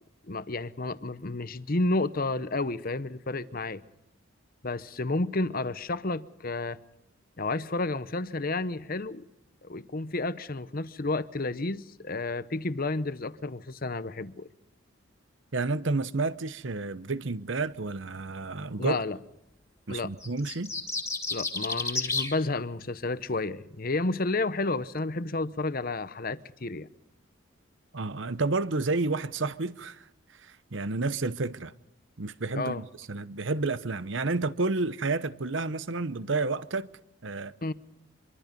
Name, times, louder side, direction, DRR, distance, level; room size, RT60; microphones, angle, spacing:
voice 1, 0.3-3.8 4.6-6.8 7.4-9.2 9.6-14.5 18.8-19.2 19.9-20.1 21.3-26.9 32.5-32.8 37.6-37.7, left 2 dB, 45° left, 0.9 m, -31 dB
voice 2, 15.5-19.0 19.9-20.7 27.9-30.0 30.4-31.7 32.2-36.9 37.2-37.5, right 3 dB, 60° right, 0.9 m, -30 dB
sound 1, 20.2-22.3, left 3 dB, 15° left, 2.7 m, -31 dB
25.0 x 24.0 x 5.4 m
head